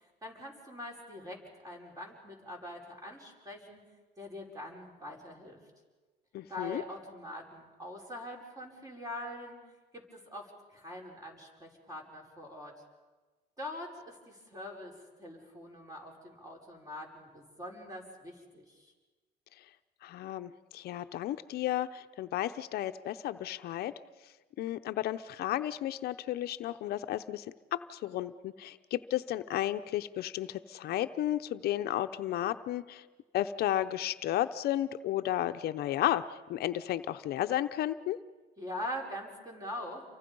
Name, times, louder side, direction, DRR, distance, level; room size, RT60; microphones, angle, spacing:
voice 1, 0.0-3.8 4.2-5.6 6.5-9.6 9.9-12.7 13.6-18.9 38.6-40.0, left 1 dB, 20° right, 1 dB, 5.6 m, -43 dB
voice 2, 6.3-6.8 20.0-23.9 24.6-27.5 27.7-33.0 33.3-38.2, left 13 dB, 70° left, 10 dB, 0.7 m, -33 dB
29.5 x 24.0 x 5.4 m, 1.3 s
cardioid pair, 110°, 17 cm